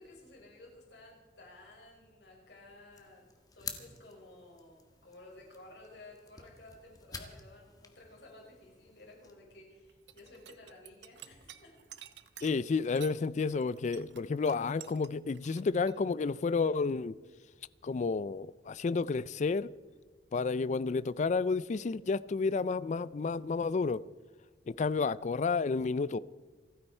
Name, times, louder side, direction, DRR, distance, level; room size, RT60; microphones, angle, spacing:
voice 1, 0.0-3.3 3.5-11.7, left 2 dB, 75° left, 5.9 m, -54 dB
sound 1, 2.9-9.3, left 5 dB, 20° left, 1.5 m, -49 dB
sound 2, 9.9-13.2 13.5-16.0, right 11 dB, 75° right, 0.8 m, -51 dB
voice 2, 12.4-17.1 17.8-19.7 20.3-24.0 24.7-26.2, left 4 dB, 40° left, 0.3 m, -31 dB
28.5 x 9.9 x 4.4 m
head